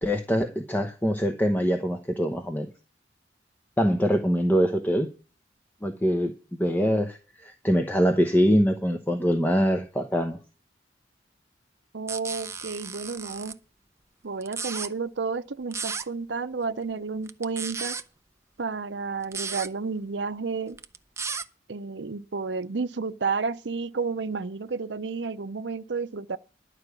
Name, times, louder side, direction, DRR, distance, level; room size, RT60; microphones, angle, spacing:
voice 1, 0.0-2.7 3.8-5.1 5.8-10.4, equal, 10° left, 0.9 m, -24 dB
voice 2, 11.9-13.6 14.2-18.0 18.6-20.8 21.7-26.4, right 4 dB, 70° right, 0.7 m, -31 dB
sound 1, 12.1-13.5 14.4-14.9 15.7-16.1 17.3-18.0 19.2-19.7 20.7-21.4, right 5 dB, 15° right, 0.6 m, -34 dB
11.5 x 4.9 x 8.2 m
head